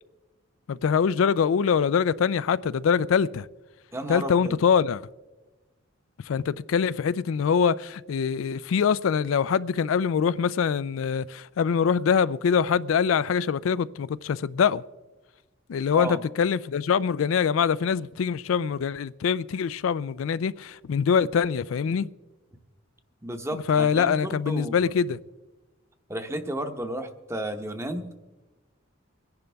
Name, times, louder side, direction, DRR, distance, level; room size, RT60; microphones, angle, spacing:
voice 1, 0.7-3.5 4.1-5.1 6.3-14.8 15.7-22.1 23.5-25.2, left 6 dB, 85° left, 0.4 m, -24 dB
voice 2, 3.9-4.6 15.9-16.2 23.2-24.8 26.1-28.2, right 1 dB, 15° right, 0.9 m, -33 dB
24.5 x 10.5 x 3.4 m
head